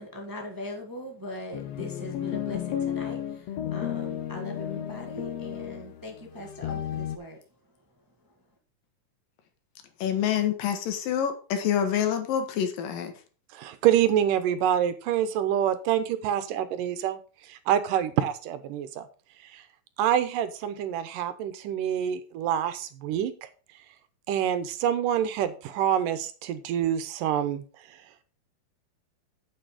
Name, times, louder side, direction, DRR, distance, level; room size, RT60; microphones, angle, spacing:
voice 1, 0.0-7.4, left 1 dB, 15° right, 2 dB, 0.6 m, -40 dB
sound 1, 1.5-7.2, left 10 dB, 70° left, 1.7 m, -33 dB
voice 2, 10.0-13.1, left 9 dB, 90° left, 7 dB, 3.1 m, -27 dB
voice 3, 13.5-17.2 17.5-19.1 19.4-19.6 20.0-23.3 24.3-27.6, right 10 dB, 80° right, 11 dB, 2.5 m, -26 dB
8.8 x 6.9 x 4.9 m, 0.37 s
omnidirectional pair, 3.8 m